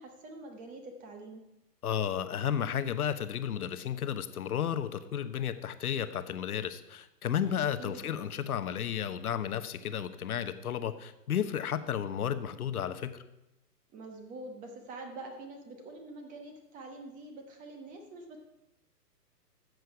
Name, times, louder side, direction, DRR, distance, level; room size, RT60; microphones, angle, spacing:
voice 1, 0.0-1.5 7.6-8.1 13.9-18.4, right 2 dB, 15° right, 4 dB, 1.1 m, -46 dB
voice 2, 1.8-13.2, left 9 dB, 60° left, 11 dB, 1.1 m, -33 dB
13.0 x 7.9 x 4.8 m, 0.94 s
hypercardioid pair, 135°, 49 cm